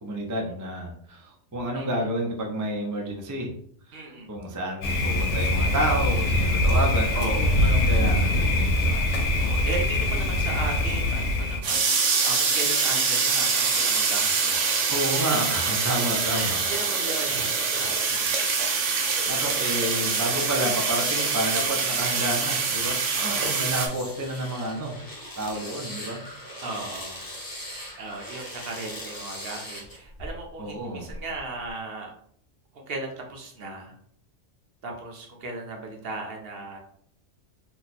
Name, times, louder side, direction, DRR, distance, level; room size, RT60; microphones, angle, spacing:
voice 1, 0.0-3.5 3.9-4.0 4.3-9.1 14.9-16.6 19.3-25.0 25.4-26.2 30.6-31.1, right 1 dB, 30° right, 1 dB, 0.3 m, -30 dB
voice 2, 3.9-4.3 7.1-7.6 9.4-14.9 16.2-18.4 19.6-19.9 23.1-23.6 26.6-27.2 28.0-32.1 32.7-34.0 34.8-36.8, right 3 dB, 60° right, 1 dB, 0.9 m, -36 dB
Thunder, 4.8-11.6, left 1 dB, 85° left, 1.0 m, -23 dB
sound 1, 11.6-23.9, right 5 dB, 85° right, 1.0 m, -25 dB
sound 2, 18.4-18.9 19.4-30.6 31.1-31.7, equal, 20° left, 0.7 m, -40 dB
2.8 x 2.2 x 4.0 m, 0.65 s
omnidirectional pair, 1.2 m